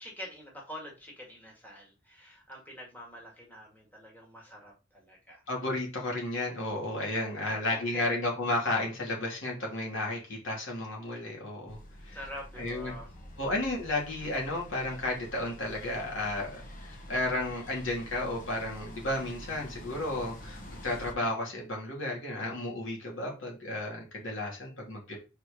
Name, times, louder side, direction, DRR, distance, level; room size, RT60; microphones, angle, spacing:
voice 1, 0.0-5.4 7.4-8.1 12.1-13.4, equal, 10° left, -2 dB, 2.2 m, -46 dB
voice 2, 5.5-12.2 12.6-13.0 13.4-25.2, left 2 dB, 75° left, -2 dB, 2.9 m, -33 dB
sound 1, 11.7-21.1, equal, 45° left, 1.4 m, -47 dB
5.0 x 4.6 x 5.0 m, 0.31 s
head